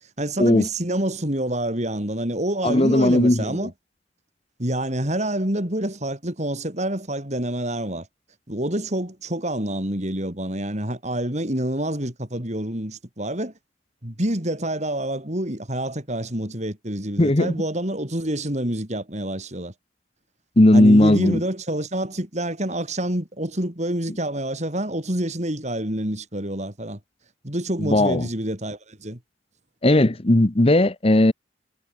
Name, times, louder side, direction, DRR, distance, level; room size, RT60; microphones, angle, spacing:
voice 1, 0.2-3.7 4.6-8.1 8.5-13.5 14.0-19.7 20.7-27.0 27.4-29.2, right 1 dB, 35° right, 4.1 m, -27 dB
voice 2, 2.6-3.6 17.2-17.5 20.6-21.4 27.8-28.2 29.8-31.3, left 1 dB, 30° left, 1.0 m, -17 dB
head